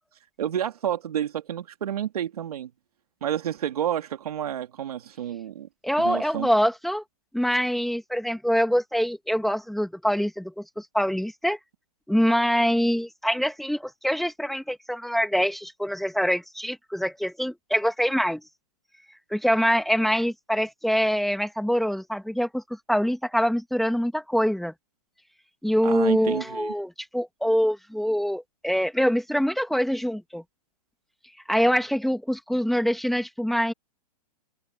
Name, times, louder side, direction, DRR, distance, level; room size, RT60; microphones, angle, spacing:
voice 1, 0.4-2.7 3.2-5.7 6.0-6.5 25.8-26.7, right 10 dB, 70° right, 2.8 m, -30 dB
voice 2, 5.8-7.0 7.3-11.6 12.1-18.4 19.3-22.6 22.9-24.7 25.6-30.4 31.5-33.7, equal, ahead, 1.7 m, -24 dB
hypercardioid pair, 150°, 20 cm